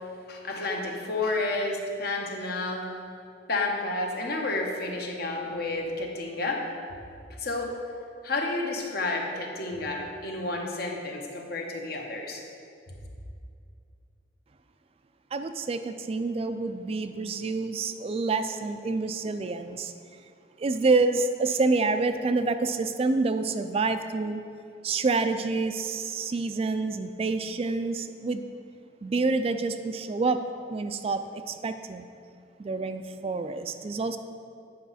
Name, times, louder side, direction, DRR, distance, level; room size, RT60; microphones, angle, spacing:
voice 1, 0.3-2.9 3.5-6.6 7.4-7.7 8.2-12.4, left 2 dB, 60° left, 1 dB, 1.1 m, -30 dB
voice 2, 15.3-19.9 20.6-24.4 24.8-28.5 29.0-30.4 30.7-32.1 32.6-34.2, right 3 dB, 35° right, 9 dB, 0.3 m, -27 dB
9.2 x 5.9 x 4.1 m, 2.4 s
head